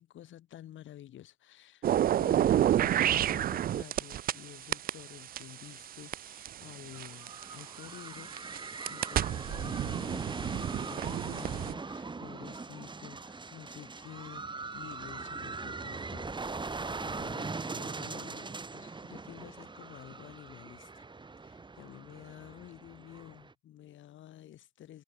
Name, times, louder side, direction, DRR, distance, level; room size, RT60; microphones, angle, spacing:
voice 1, 0.0-1.9 2.2-21.1 21.4-25.0, left 12 dB, 75° left, 2.4 m, -50 dB
sound 1, 1.8-4.4 4.7-7.6 8.3-11.7, right 11 dB, 50° right, 0.4 m, -29 dB
sound 2, 6.9-23.5, right 4 dB, 25° right, 1.8 m, -41 dB
cardioid pair, 90°, 20 cm